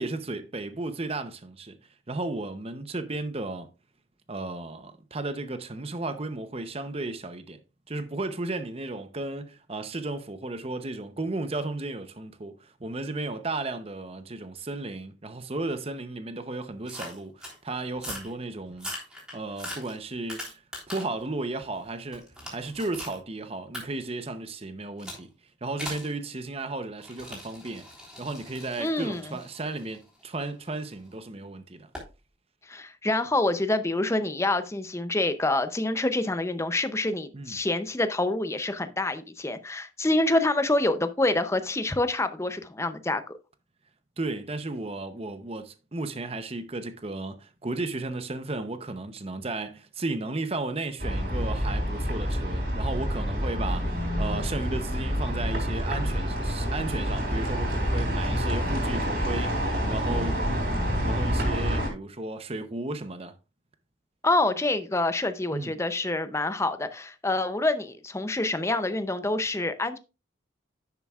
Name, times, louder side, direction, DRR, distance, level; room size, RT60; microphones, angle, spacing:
voice 1, 0.0-1.8 2.1-3.7 4.3-7.6 7.9-18.9 19.3-20.6 20.9-25.3 25.6-27.9 28.2-31.9 37.3-37.6 44.2-60.4 61.0-63.3 65.5-65.7, right 2 dB, 30° right, 0.7 m, -34 dB
sound 1, 16.9-17.6 18.0-18.3 18.7-21.2 21.6-23.2 23.7-23.8 25.0-25.2 25.8-26.1 27.0-30.9 31.9-32.1, left 1 dB, 5° right, 3.3 m, -40 dB
voice 2, 28.8-29.2 32.7-43.3 64.2-70.0, left 2 dB, 15° left, 0.5 m, -27 dB
sound 2, 51.0-61.9, equal, 55° right, 3.6 m, -27 dB
10.5 x 6.9 x 2.4 m
head